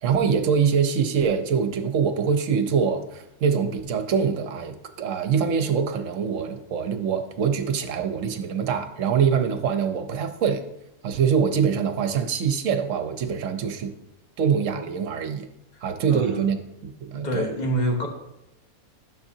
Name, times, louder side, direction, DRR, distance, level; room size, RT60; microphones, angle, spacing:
voice 1, 0.0-10.6 11.0-13.9 14.4-15.5 15.8-16.6 16.8-17.4, right 6 dB, 65° right, 8 dB, 1.0 m, -24 dB
voice 2, 16.1-16.5 17.1-18.1, equal, 30° left, 2 dB, 1.3 m, -27 dB
11.5 x 6.6 x 2.7 m, 0.84 s
omnidirectional pair, 1.5 m